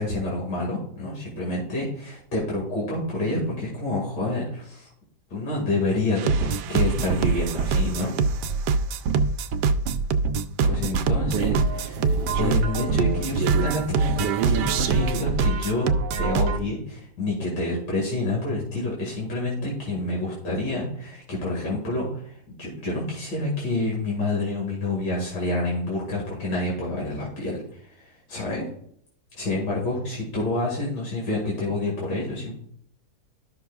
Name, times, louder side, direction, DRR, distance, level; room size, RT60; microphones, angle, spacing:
voice 1, 0.0-4.9 5.3-8.1 10.6-15.9 16.2-28.7 29.3-32.5, left 2 dB, 80° left, -4 dB, 2.8 m, -28 dB
sound 1, 6.2-16.6, right 4 dB, 80° right, 1.2 m, -24 dB
13.0 x 5.9 x 2.4 m, 0.66 s
omnidirectional pair, 1.8 m